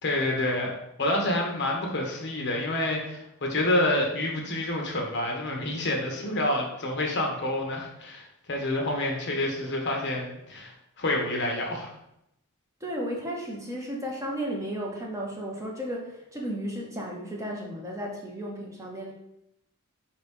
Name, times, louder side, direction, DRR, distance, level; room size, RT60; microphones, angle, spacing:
voice 1, 0.0-11.9, left 1 dB, 50° left, 0 dB, 0.8 m, -28 dB
voice 2, 12.8-19.1, equal, 15° right, -1 dB, 0.6 m, -34 dB
4.5 x 2.9 x 3.4 m, 0.80 s
head